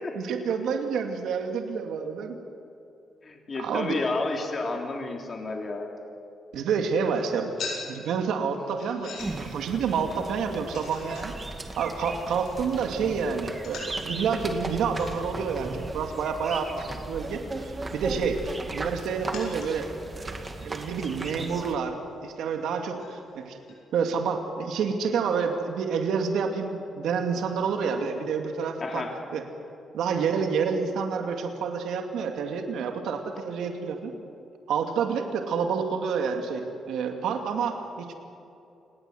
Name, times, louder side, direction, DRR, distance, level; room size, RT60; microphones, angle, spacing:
voice 1, 0.1-2.4 3.6-4.0 6.5-7.5 7.8-11.3 11.8-18.4 18.7-19.9 20.2-23.6 23.9-29.0 29.3-29.4 29.9-34.1 34.7-38.1, right 6 dB, 90° right, 4 dB, 2.4 m, -28 dB
voice 2, 3.2-5.9 28.8-29.1, left 3 dB, 35° left, 2 dB, 3.4 m, -31 dB
sound 1, 7.0-23.8, left 4 dB, 65° left, 7.9 m, -46 dB
sound 2, 9.2-21.8, right 2 dB, 20° right, 2.1 m, -37 dB
29.0 x 19.0 x 8.0 m, 2.7 s
cardioid pair, 140°, 0 cm